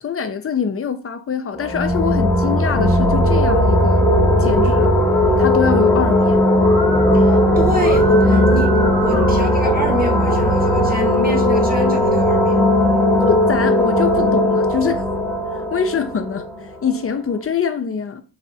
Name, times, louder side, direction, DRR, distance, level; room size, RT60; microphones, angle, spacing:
voice 1, 0.0-4.1 4.4-5.0 5.4-6.5 13.2-15.0 15.7-16.5 16.8-18.2, left 6 dB, 30° left, 0.5 m, -23 dB
sound 1, 1.6-17.1, left 1 dB, 5° left, 0.9 m, -17 dB
Musical instrument, 5.4-11.0, right 2 dB, 70° right, 1.8 m, -30 dB
voice 2, 7.1-12.7, right 1 dB, 20° right, 0.9 m, -27 dB
3.2 x 2.6 x 2.6 m
cardioid pair, 75°, 45 cm